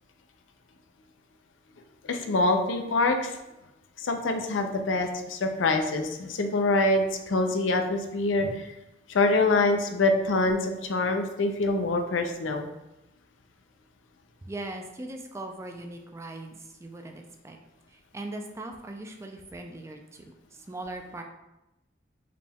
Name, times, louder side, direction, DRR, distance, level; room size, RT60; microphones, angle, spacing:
voice 1, 2.0-3.4 4.0-8.7 9.1-12.7, left 2 dB, 85° left, 5 dB, 0.5 m, -25 dB
voice 2, 14.4-17.6 17.9-21.2, right 2 dB, 15° right, 3 dB, 0.3 m, -40 dB
4.9 x 2.3 x 3.4 m, 0.94 s
head